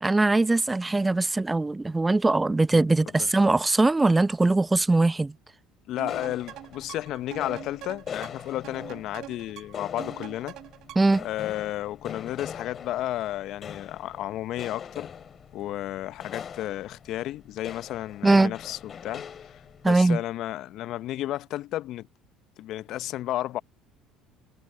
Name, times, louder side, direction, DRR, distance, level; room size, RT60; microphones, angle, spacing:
voice 1, 0.0-5.3 11.0-11.2 18.2-18.5 19.8-20.2, right 2 dB, 15° right, 0.8 m, -21 dB
voice 2, 5.9-10.5 11.2-15.1 15.5-19.6 19.8-22.1 22.6-23.6, left 14 dB, 60° left, 1.2 m, -33 dB
sound 1, 6.0-11.3, right 15 dB, 60° right, 3.5 m, -44 dB
sound 2, 6.1-20.0, left 7 dB, 40° left, 3.0 m, -42 dB
hypercardioid pair, 60°, 0 cm